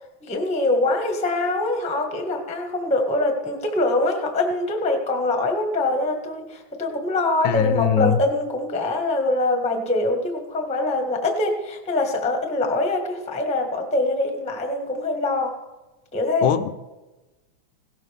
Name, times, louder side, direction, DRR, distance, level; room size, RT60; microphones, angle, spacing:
voice 1, 0.2-15.5 16.1-16.5, left 2 dB, 5° left, 2 dB, 0.6 m, -24 dB
voice 2, 7.4-8.2 16.4-16.7, left 9 dB, 80° left, 11 dB, 2.1 m, -21 dB
17.5 x 14.0 x 3.6 m, 1.1 s
omnidirectional pair, 3.4 m